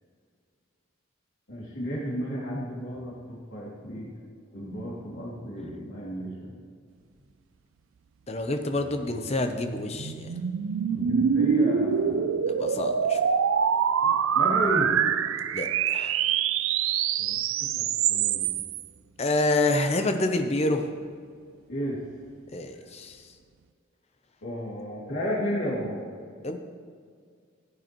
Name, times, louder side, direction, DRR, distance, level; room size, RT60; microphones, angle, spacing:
voice 1, 1.5-4.1 4.5-6.6 10.9-12.4 14.0-14.9 17.2-18.6 21.7-22.0 24.4-26.0, equal, 70° left, -6 dB, 2.7 m, -33 dB
voice 2, 8.3-10.3 12.5-13.2 15.5-16.2 19.2-20.9 22.5-23.2 26.4-26.6, left 2 dB, 30° left, 6 dB, 0.6 m, -27 dB
sound 1, 9.1-18.8, right 7 dB, 75° right, 0.4 m, -25 dB
15.0 x 8.4 x 3.0 m, 2.1 s
head